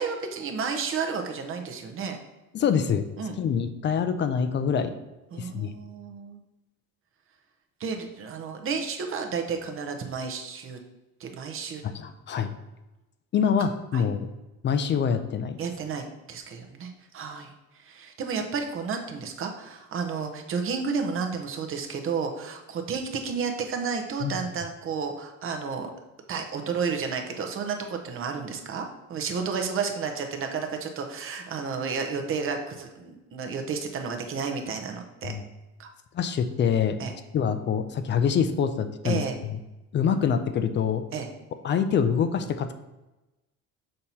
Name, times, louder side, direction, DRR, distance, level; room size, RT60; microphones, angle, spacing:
voice 1, 0.0-2.2 3.2-3.4 5.3-6.4 7.8-10.8 11.2-11.8 13.9-14.0 15.6-25.9 26.3-35.3 35.8-35.9 37.0-37.1 39.0-39.4 41.1-41.3, right 5 dB, 40° right, 4 dB, 0.9 m, -32 dB
voice 2, 2.5-3.0 3.4-4.9 5.3-5.7 11.8-12.5 13.3-14.3 14.6-15.6 24.2-24.4 35.2-35.4 36.1-37.0 37.3-39.5 39.9-41.0 41.6-42.7, left 7 dB, 35° left, 9 dB, 0.4 m, -25 dB
6.6 x 3.0 x 5.4 m, 1.0 s
cardioid pair, 155°, 34 cm